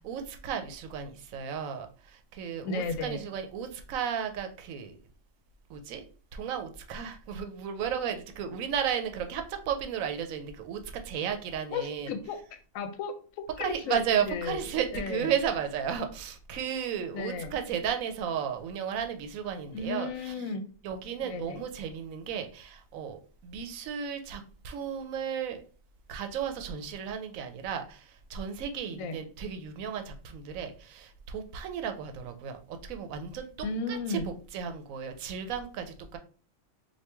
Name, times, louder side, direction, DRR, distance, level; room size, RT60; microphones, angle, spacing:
voice 1, 0.0-5.0 5.7-6.0 6.3-12.1 13.6-20.3 20.8-25.6 26.1-34.2 34.5-36.2, right 8 dB, 90° right, 7 dB, 1.0 m, -34 dB
voice 2, 2.6-3.3 11.7-12.4 12.7-13.1 13.6-14.6 14.9-15.3 17.1-17.6 19.7-20.6 21.3-21.6 28.9-29.2 33.6-34.3, left 4 dB, 80° left, 8 dB, 1.0 m, -34 dB
3.0 x 2.5 x 3.3 m, 0.40 s
omnidirectional pair, 1.4 m